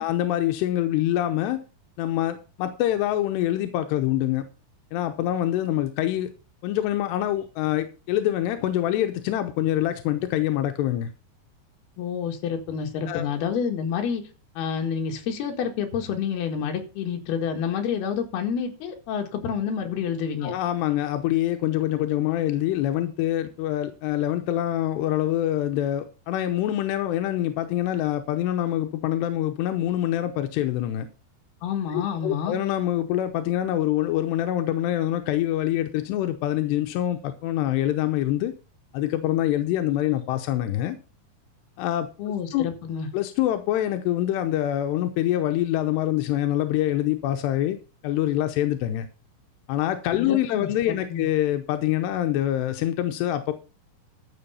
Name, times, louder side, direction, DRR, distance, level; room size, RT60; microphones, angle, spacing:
voice 1, 0.0-1.6 2.0-4.5 4.9-6.3 6.6-11.1 13.1-13.3 20.4-31.1 31.9-38.5 38.9-41.0 41.8-42.1 42.5-42.7 43.1-47.8 48.0-49.1 49.7-53.5, left 13 dB, 90° left, 3.0 m, -25 dB
voice 2, 12.0-14.2 14.6-20.5 31.6-32.6 42.2-43.1 50.2-51.3, left 7 dB, 70° left, 3.7 m, -28 dB
12.5 x 6.8 x 5.5 m
omnidirectional pair, 4.7 m